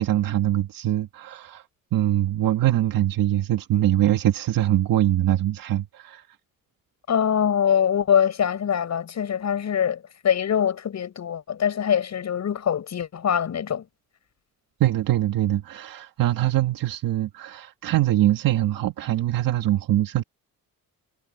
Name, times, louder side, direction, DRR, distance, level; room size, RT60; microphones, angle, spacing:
voice 1, 0.0-1.6 1.9-6.2 14.8-20.2, right 13 dB, 80° right, 1.5 m, -23 dB
voice 2, 7.1-13.8, left 8 dB, 55° left, 6.3 m, -23 dB
cardioid pair, 120°, 33 cm